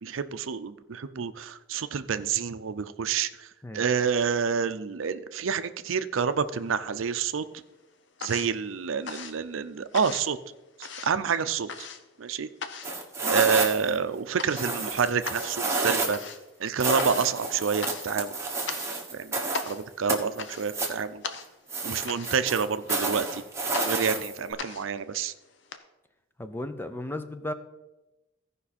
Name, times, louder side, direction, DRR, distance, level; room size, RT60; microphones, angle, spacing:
voice 1, 0.0-3.5 3.7-7.4 8.2-10.4 11.0-11.9 12.2-12.5 13.2-16.2 16.6-18.4 19.1-21.2 21.8-23.4 23.8-25.3, right 6 dB, 85° right, 12 dB, 0.5 m, -28 dB
sound 1, 6.4-7.2 7.5-25.8, left 5 dB, 65° left, 0.8 m, -41 dB
sound 2, 12.8-14.0 14.6-16.3 16.8-19.7 20.1-21.0 21.7-24.5, right 3 dB, 15° right, 1.3 m, -30 dB
voice 2, 26.4-27.5, left 1 dB, 10° left, 9 dB, 0.5 m, -35 dB
15.5 x 5.4 x 4.2 m, 1.0 s
head